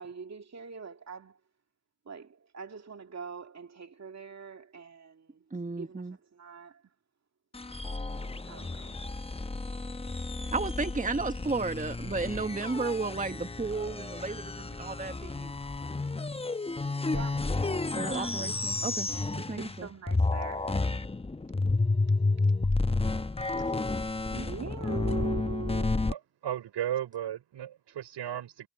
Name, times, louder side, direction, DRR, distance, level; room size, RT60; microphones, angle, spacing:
voice 1, 0.0-1.4 2.1-5.4 5.8-6.9 8.4-9.0 17.1-17.6 18.1-18.7 19.4-20.8 23.6-26.1, right 5 dB, 35° right, 2.2 m, -43 dB
voice 2, 5.5-6.1 10.5-15.5 17.9-19.1 19.4-19.9, right 3 dB, 15° right, 1.6 m, -33 dB
sound 1, 7.5-19.8 20.1-26.1, left 3 dB, 15° left, 1.0 m, -31 dB
voice 3, 26.1-28.7, right 11 dB, 65° right, 5.0 m, -35 dB
hypercardioid pair, 50°, 44 cm